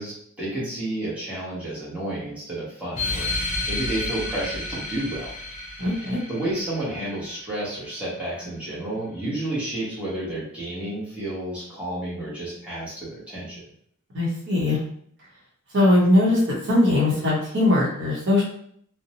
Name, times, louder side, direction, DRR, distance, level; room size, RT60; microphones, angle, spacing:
voice 1, 0.0-5.3 6.0-13.6, right 1 dB, 5° right, -9 dB, 1.0 m, -31 dB
sound 1, 2.9-8.0, left 2 dB, 35° left, 0.6 m, -31 dB
voice 2, 5.8-6.2 14.1-14.8 15.7-18.4, left 1 dB, 55° right, -5 dB, 0.9 m, -20 dB
2.6 x 2.1 x 2.8 m, 0.65 s
head